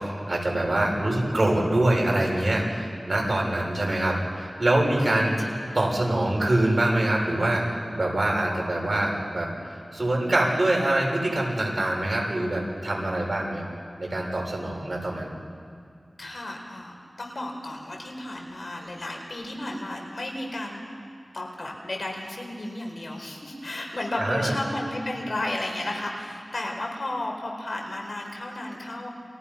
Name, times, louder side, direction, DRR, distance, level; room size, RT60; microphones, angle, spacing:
voice 1, 0.0-5.4 5.7-7.6 7.9-13.6 14.0-15.3 24.2-24.5, right 1 dB, 50° right, -2 dB, 6.9 m, -24 dB
voice 2, 5.4-5.9 16.2-20.8 21.3-29.1, left 1 dB, 70° left, 1 dB, 4.5 m, -33 dB
30.0 x 23.5 x 5.8 m, 2.3 s
wide cardioid pair, 45°, 0 cm